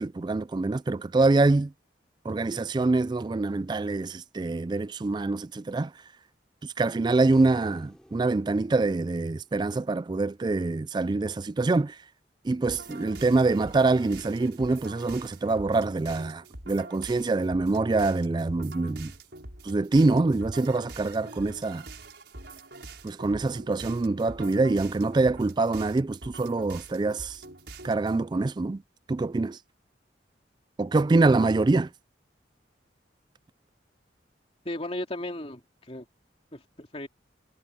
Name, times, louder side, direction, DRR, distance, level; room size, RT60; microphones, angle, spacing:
voice 1, 0.0-1.7 2.3-5.9 6.6-12.0 12.4-19.1 19.6-21.8 23.0-27.4 27.8-28.8 29.1-29.6 30.8-31.9, right 3 dB, 25° right, 0.3 m, -25 dB
sound 1, 7.3-10.6 13.5-13.6, equal, 5° left, 6.1 m, -55 dB
sound 2, 12.7-28.2, right 2 dB, 65° right, 6.9 m, -45 dB
voice 2, 34.6-36.0 36.5-37.1, left 1 dB, 35° left, 2.7 m, -35 dB
head